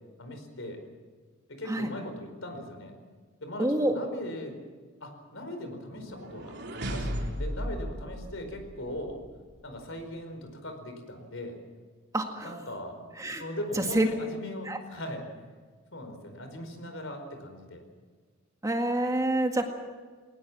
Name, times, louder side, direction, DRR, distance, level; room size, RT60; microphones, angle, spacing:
voice 1, 0.2-0.8 1.5-2.9 3.4-4.6 5.0-9.2 9.6-11.6 12.4-13.1 13.4-15.2 15.9-17.8, left 1 dB, 65° left, 6 dB, 4.8 m, -39 dB
voice 2, 3.6-4.0 12.1-12.5 13.2-13.4 13.8-14.1 14.7-14.8 18.6-19.7, right 1 dB, 15° right, 4 dB, 1.9 m, -27 dB
sound 1, 6.0-9.1, equal, 60° right, 3.7 m, -35 dB
21.5 x 19.0 x 7.4 m, 1.5 s
head